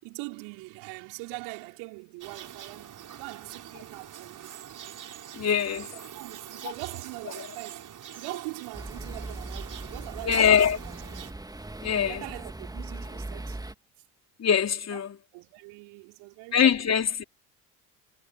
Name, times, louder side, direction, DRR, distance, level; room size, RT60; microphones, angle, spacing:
voice 1, 0.0-4.5 5.4-5.5 5.8-7.9 8.1-10.8 12.1-13.6 14.9-15.0 15.3-16.9, right 30 dB, 60° right, 4.9 m, -42 dB
sound 1, 2.2-11.3, right 10 dB, 40° right, 4.7 m, -44 dB
voice 2, 5.4-5.9 10.2-10.8 11.8-12.2 14.4-15.2 16.5-17.2, left 8 dB, 35° left, 4.0 m, -23 dB
sound 2, 8.7-13.7, right 2 dB, 10° right, 2.4 m, -39 dB
figure-of-eight pair, 60°, 47 cm